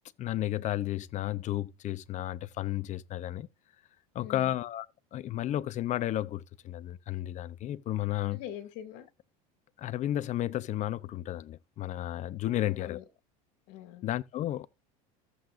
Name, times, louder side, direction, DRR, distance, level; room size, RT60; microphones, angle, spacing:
voice 1, 0.2-3.5 4.1-4.9 5.1-8.4 9.8-13.0 14.0-14.7, left 13 dB, 40° left, 0.6 m, -33 dB
voice 2, 4.2-4.6 8.3-9.1 12.5-13.0 13.7-14.1, left 11 dB, 65° left, 2.3 m, -43 dB
14.5 x 7.9 x 2.5 m
supercardioid pair, 115°, 19 cm